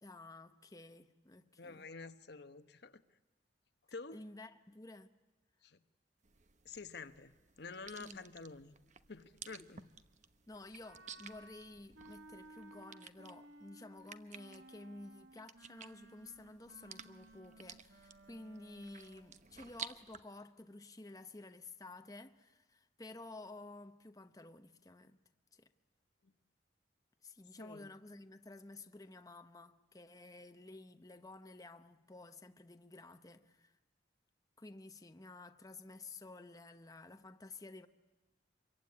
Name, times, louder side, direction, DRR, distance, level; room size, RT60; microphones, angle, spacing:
voice 1, 0.0-1.9 4.1-5.1 8.0-8.2 9.6-9.7 10.5-25.2 25.5-25.7 27.2-33.8 34.6-37.9, left 2 dB, 20° left, 0.9 m, -52 dB
voice 2, 1.6-3.0 3.9-4.2 5.6-5.8 6.6-8.7 9.1-9.9 26.2-26.3 27.6-27.9, left 4 dB, 65° left, 1.1 m, -49 dB
sound 1, 6.2-20.2, right 7 dB, 40° right, 1.0 m, -54 dB
Wind instrument woodwind instrument, 10.8-19.4, right 2 dB, 80° right, 2.0 m, -59 dB
26.0 x 23.0 x 9.7 m
head